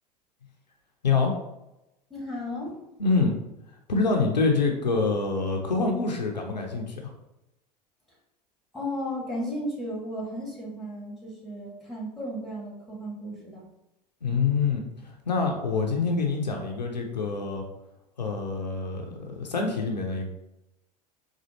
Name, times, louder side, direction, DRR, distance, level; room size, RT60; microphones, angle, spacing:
voice 1, 2.1-2.8 8.7-13.7, equal, ahead, -4 dB, 1.5 m, -34 dB
voice 2, 3.0-3.4 3.9-7.0 14.2-14.8 15.3-17.6 18.2-20.3, left 4 dB, 85° left, 1 dB, 0.6 m, -26 dB
4.2 x 2.4 x 2.8 m, 0.89 s
figure-of-eight pair, 75°, 21 cm